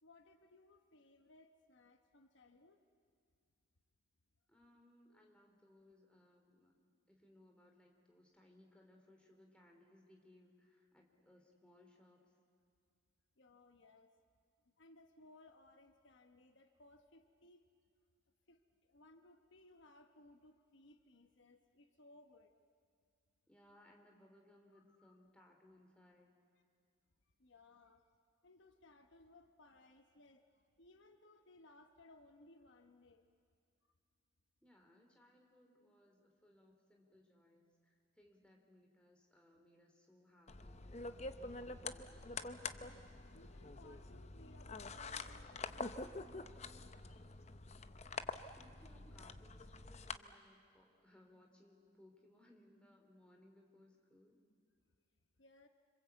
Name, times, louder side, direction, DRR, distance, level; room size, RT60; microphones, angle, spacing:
voice 1, 0.0-2.8 5.1-5.3 13.4-14.1 14.8-17.7 18.5-22.5 24.7-25.2 27.4-28.1 28.4-33.3 42.8-46.0 55.4-55.7, left 2 dB, 65° left, 7 dB, 1.1 m, -64 dB
voice 2, 4.5-6.7 7.1-12.3 23.5-26.3 34.6-42.4 48.6-54.4, left 1 dB, 5° left, 1 dB, 3.1 m, -66 dB
sound 1, 40.5-50.2, left 3 dB, 35° left, 0.7 m, -47 dB
27.0 x 25.5 x 8.2 m, 2.2 s
head